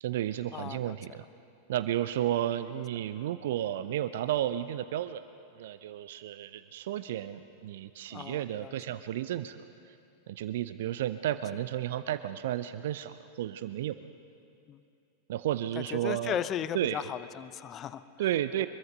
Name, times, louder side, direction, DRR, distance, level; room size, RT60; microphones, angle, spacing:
voice 1, 0.0-1.3 1.7-5.2 5.6-9.6 9.9-10.0 10.3-14.0 15.3-16.4 16.7-17.0 18.2-18.7, right 12 dB, 55° right, 13 dB, 0.5 m, -32 dB
voice 2, 0.5-1.2 8.1-8.7 14.7-14.8 15.8-18.0 18.6-18.7, left 10 dB, 30° left, 15 dB, 0.7 m, -36 dB
24.0 x 22.0 x 5.4 m, 2.7 s
figure-of-eight pair, 90°, 0 cm